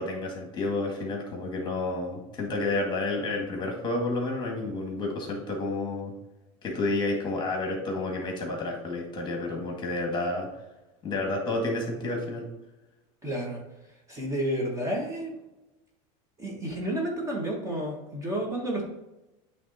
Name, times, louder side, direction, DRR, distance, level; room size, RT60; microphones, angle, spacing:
voice 1, 0.0-6.1 6.6-10.5 11.0-12.5, left 2 dB, 25° left, 1 dB, 1.8 m, -30 dB
voice 2, 13.2-13.6 14.1-15.3 16.4-18.9, right 1 dB, 20° right, -1 dB, 1.4 m, -31 dB
8.4 x 3.5 x 4.2 m, 1.0 s
supercardioid pair, 135°, 17 cm